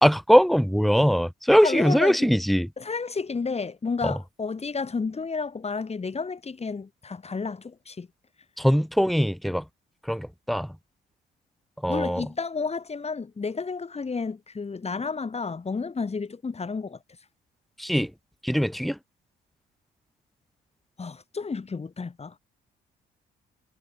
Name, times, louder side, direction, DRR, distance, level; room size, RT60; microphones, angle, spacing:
voice 1, 0.0-2.7 4.0-4.2 8.6-9.6 10.1-10.7 11.8-12.3 17.8-18.1 18.4-19.0, equal, ahead, 1.8 m, -21 dB
voice 2, 1.6-2.3 2.8-8.1 11.9-17.0 21.0-22.4, left 4 dB, 30° left, 6.7 m, -31 dB
cardioid pair, 90°, 20 cm